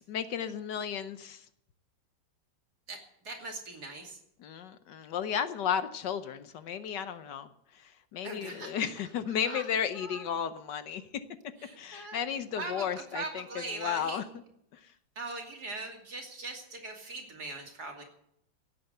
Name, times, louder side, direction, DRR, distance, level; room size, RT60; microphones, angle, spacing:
voice 1, 0.1-1.5 4.4-11.0 11.8-14.2 14.7-14.8, left 8 dB, 70° left, 11 dB, 1.4 m, -34 dB
voice 2, 2.9-4.2 8.2-8.8 9.4-9.6 9.9-10.2 11.6-12.2 12.6-12.9 13.1-14.2 15.2-18.0, right 3 dB, 55° right, 1 dB, 3.2 m, -40 dB
16.5 x 8.1 x 7.8 m, 0.74 s
omnidirectional pair, 2.0 m